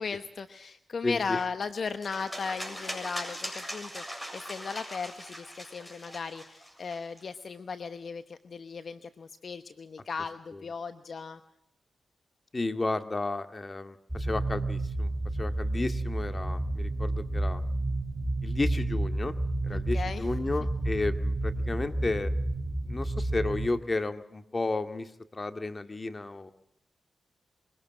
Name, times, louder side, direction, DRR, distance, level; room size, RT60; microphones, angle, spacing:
voice 1, 0.0-11.4 19.7-20.3, left 5 dB, 60° left, 11 dB, 1.0 m, -37 dB
voice 2, 1.0-1.4 12.5-15.1 15.4-17.6 18.4-19.3 19.6-22.3 22.9-26.5, left 2 dB, 35° left, 9 dB, 2.0 m, -32 dB
sound 1, 2.0-7.2, equal, 10° left, 7.8 m, -40 dB
sound 2, 14.1-23.7, right 2 dB, 20° right, 5.0 m, -30 dB
23.5 x 18.5 x 7.5 m, 0.78 s
cardioid pair, 50°, 0 cm